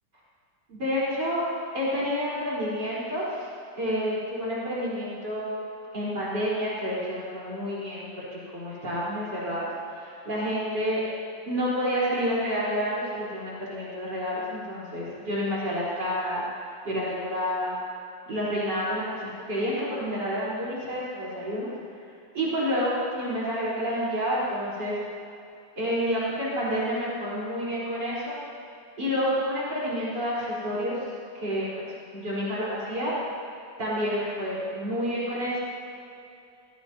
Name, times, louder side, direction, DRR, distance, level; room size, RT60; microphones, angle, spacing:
voice 1, 0.7-1.4 1.7-3.5 3.8-5.6 5.9-11.0 11.5-16.4 16.8-17.7 18.3-21.7 22.3-25.0 25.8-28.4 29.0-31.0 31.3-31.9 32.1-33.1 33.8-35.6, equal, 65° right, -8 dB, 4.7 m, -29 dB
25.0 x 17.5 x 2.8 m, 2.6 s
omnidirectional pair, 2.0 m